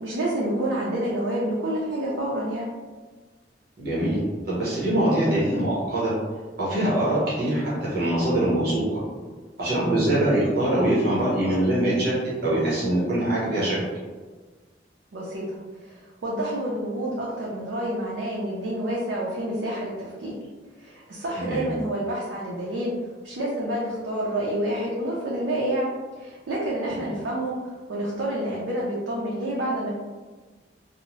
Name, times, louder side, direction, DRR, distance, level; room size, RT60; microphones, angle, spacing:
voice 1, 0.0-2.7 15.1-15.6 15.8-20.3 20.8-22.9 23.2-25.9 26.2-27.6 27.9-29.9, right 1 dB, 80° right, -5 dB, 0.5 m, -28 dB
voice 2, 3.8-4.2 4.5-6.1 6.6-9.0 9.6-13.8 21.4-21.7 26.9-27.0, right 1 dB, 60° right, -8 dB, 0.9 m, -23 dB
2.6 x 2.0 x 3.0 m, 1.4 s
head